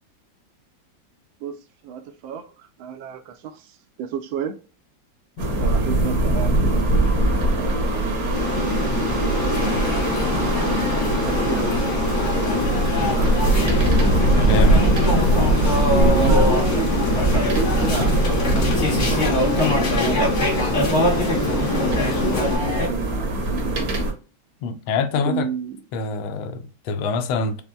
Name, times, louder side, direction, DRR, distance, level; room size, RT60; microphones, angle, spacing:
voice 1, 1.8-4.6 5.6-7.2 7.5-8.3 8.6-9.3 10.1-12.8 13.0-13.3 15.9-19.9 20.8-22.4 22.7-24.1 25.2-25.8, right 7 dB, 80° right, 1.4 m, -32 dB
sound 1, 5.4-24.1, right 1 dB, 60° right, 1.1 m, -21 dB
Aircraft, 8.3-22.6, left 3 dB, 55° left, 0.9 m, -27 dB
sound 2, 9.5-22.9, left 1 dB, 30° left, 1.1 m, -26 dB
voice 2, 14.4-14.8 24.6-25.5 25.9-27.6, left 4 dB, 80° left, 1.3 m, -25 dB
5.4 x 2.1 x 2.2 m
omnidirectional pair, 2.1 m